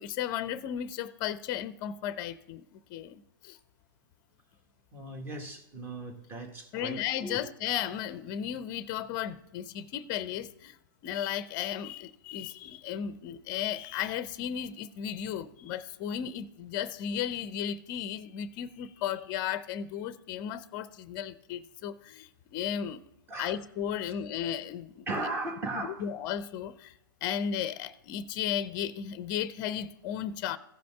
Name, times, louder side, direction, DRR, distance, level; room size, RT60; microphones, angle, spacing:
voice 1, 0.0-3.6 6.7-10.8 11.0-23.0 23.4-25.1 26.0-26.9 27.2-30.6, left 9 dB, 35° left, 0.6 m, -35 dB
voice 2, 4.9-7.4 23.3-23.6 24.0-24.1 25.1-26.0, right 2 dB, 20° right, 1.6 m, -37 dB
15.0 x 5.2 x 3.4 m
hypercardioid pair, 130°, 12 cm